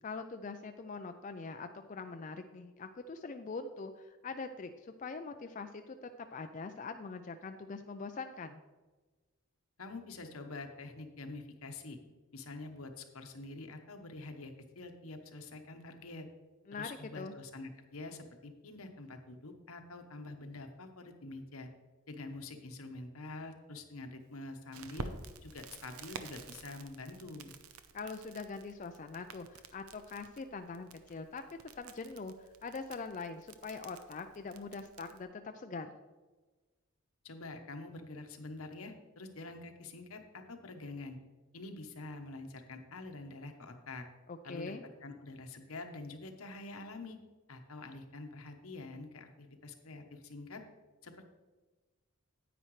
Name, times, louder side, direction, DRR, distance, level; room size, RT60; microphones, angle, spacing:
voice 1, 0.0-8.6 16.7-17.3 27.9-31.4 31.8-35.9 44.3-44.9, left 4 dB, 35° left, 7 dB, 0.4 m, -43 dB
voice 2, 9.8-12.0 12.3-16.3 16.7-21.7 22.1-25.1 25.4-27.5 37.2-41.2 41.5-44.1 44.4-44.8 45.0-47.2 47.5-50.6 51.0-51.3, left 2 dB, 80° left, 5 dB, 1.0 m, -46 dB
Crackle, 24.7-35.2, right 4 dB, 85° right, 0.7 m, -50 dB
9.8 x 9.1 x 3.2 m, 1.3 s
head